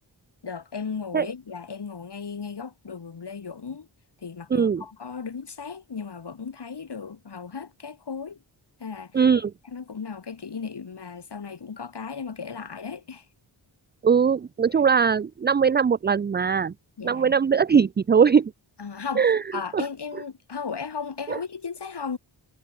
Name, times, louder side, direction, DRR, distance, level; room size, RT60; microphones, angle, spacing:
voice 1, 0.4-3.9 4.2-8.4 8.8-9.2 9.6-13.3 17.0-17.4 18.8-19.3 19.5-22.2, left 5 dB, 60° left, 2.2 m, -36 dB
voice 2, 4.5-4.8 9.1-9.5 14.0-16.7 17.0-18.5 19.2-19.4 19.7-19.8 21.3-21.4, right 6 dB, 25° right, 0.4 m, -20 dB
cardioid pair, 50°, 46 cm